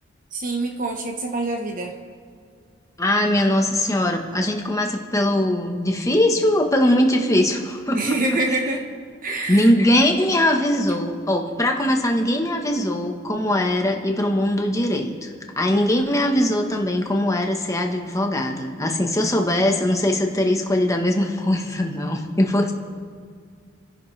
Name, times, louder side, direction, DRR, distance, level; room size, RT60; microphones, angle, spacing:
voice 1, 0.3-1.9 7.9-8.8 9.2-9.7, right 2 dB, 45° right, 2 dB, 1.3 m, -25 dB
voice 2, 3.0-8.2 9.5-15.3 15.6-22.7, left 1 dB, 15° left, 3 dB, 1.3 m, -21 dB
29.0 x 10.5 x 3.4 m, 2.1 s
head